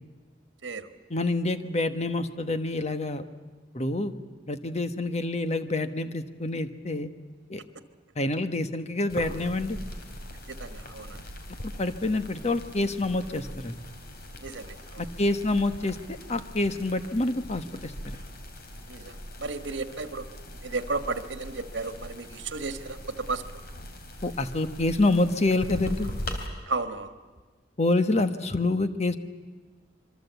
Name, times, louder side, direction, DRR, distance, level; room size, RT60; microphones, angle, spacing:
voice 1, 1.1-3.2 3.7-4.1 4.5-7.1 7.5-7.6 8.2-9.8 11.8-13.8 15.0-16.0 16.3-18.2 24.2-26.1 27.8-29.2, left 2 dB, 35° left, 10 dB, 1.3 m, -27 dB
sound 1, 9.1-26.5, equal, 55° left, 3.4 m, -41 dB
voice 2, 10.5-11.3 14.4-15.1 18.9-20.3 20.6-23.6 26.7-27.1, right 3 dB, 75° right, 10 dB, 1.5 m, -34 dB
26.0 x 23.5 x 8.2 m, 1.3 s
head